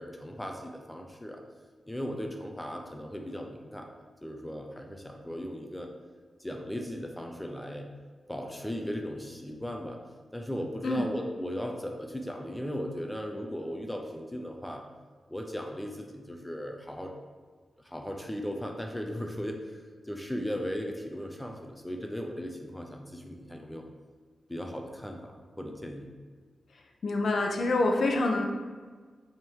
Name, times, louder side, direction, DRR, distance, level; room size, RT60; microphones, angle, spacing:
voice 1, 0.0-1.4 1.9-3.9 4.2-5.9 6.4-7.9 8.3-10.0 10.3-14.8 15.3-17.1 17.8-23.9 24.5-26.1, equal, 5° left, 2 dB, 0.5 m, -37 dB
voice 2, 27.0-28.4, left 2 dB, 65° left, 2 dB, 0.8 m, -26 dB
5.9 x 3.6 x 4.5 m, 1.5 s
wide cardioid pair, 125°, 0 cm